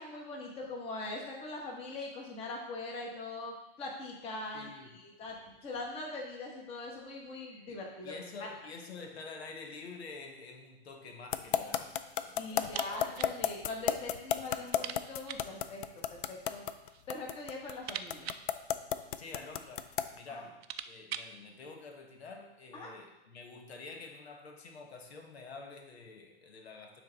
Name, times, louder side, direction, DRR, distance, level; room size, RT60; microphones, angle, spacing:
voice 1, 0.0-5.4 5.6-8.5 12.4-15.8 16.1-16.6 17.1-18.3 22.7-22.9, left 2 dB, 20° left, -1 dB, 1.1 m, -42 dB
voice 2, 4.5-4.9 7.7-13.7 14.5-14.6 19.2-27.0, left 4 dB, 90° left, 3 dB, 1.2 m, -48 dB
sound 1, 11.3-20.2, left 10 dB, 55° left, 0.4 m, -31 dB
sound 2, 12.6-13.4 13.7-13.8 14.1-14.2 14.7-15.6 16.5-17.1 17.4-19.4 20.1-20.2 20.4-21.4, right 9 dB, 80° right, 0.5 m, -44 dB
9.2 x 3.4 x 3.9 m, 0.93 s
hypercardioid pair, 150°, 31 cm